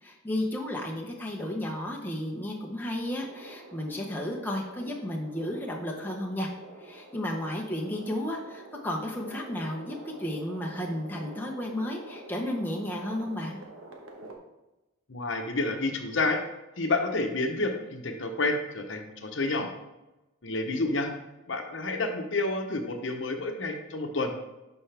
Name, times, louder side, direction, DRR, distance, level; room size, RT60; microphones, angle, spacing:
voice 1, 0.0-6.5 6.8-13.6, left 1 dB, 10° left, -1 dB, 0.8 m, -33 dB
sound 1, 3.1-14.4, right 2 dB, 85° right, 1.2 m, -47 dB
voice 2, 15.1-16.4 16.8-19.7 20.4-21.1 21.5-24.3, left 2 dB, 65° left, 4 dB, 0.9 m, -29 dB
11.5 x 4.6 x 3.4 m, 1.0 s
head